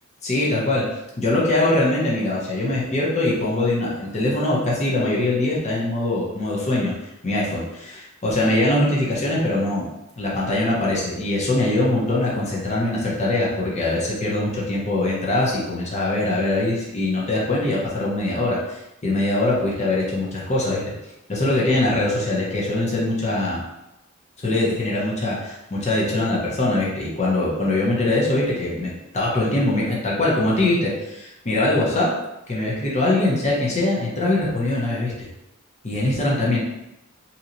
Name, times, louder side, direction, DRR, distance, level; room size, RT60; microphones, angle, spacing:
voice 1, 0.2-0.9 1.2-6.9 7.2-9.9 10.2-20.8 21.3-23.6 24.4-32.1 32.5-35.3 35.8-36.6, left 2 dB, 35° left, -5 dB, 0.7 m, -22 dB
2.8 x 2.8 x 2.5 m, 0.91 s
head